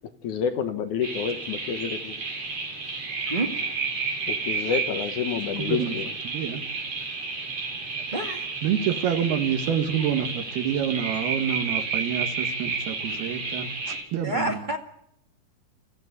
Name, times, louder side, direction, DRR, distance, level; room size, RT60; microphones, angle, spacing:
voice 1, 0.2-2.1 4.3-6.1, left 7 dB, 65° left, 2.3 m, -29 dB
sound 1, 1.0-14.0, right 4 dB, 40° right, 5.0 m, -31 dB
voice 2, 5.6-5.9 6.2-6.6 8.6-14.6, right 9 dB, 90° right, 3.4 m, -27 dB
voice 3, 8.1-8.5 14.2-14.8, right 1 dB, 25° right, 1.0 m, -28 dB
28.0 x 15.0 x 9.5 m
omnidirectional pair, 4.3 m